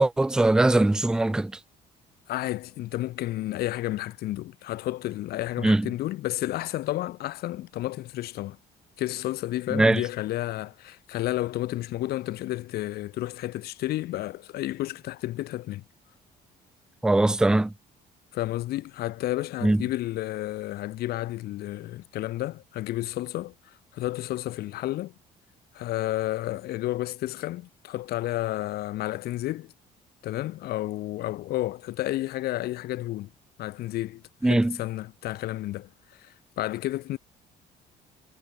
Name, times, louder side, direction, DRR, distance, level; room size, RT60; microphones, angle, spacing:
voice 1, 0.0-1.5 5.6-5.9 9.7-10.0 17.0-17.7 19.6-19.8 34.4-34.8, right 2 dB, 5° right, 0.3 m, -21 dB
voice 2, 2.3-8.6 9.0-15.8 18.3-25.1 25.7-29.7 30.2-33.3 33.6-37.2, left 15 dB, 70° left, 0.7 m, -31 dB
cardioid pair, 110°, 17 cm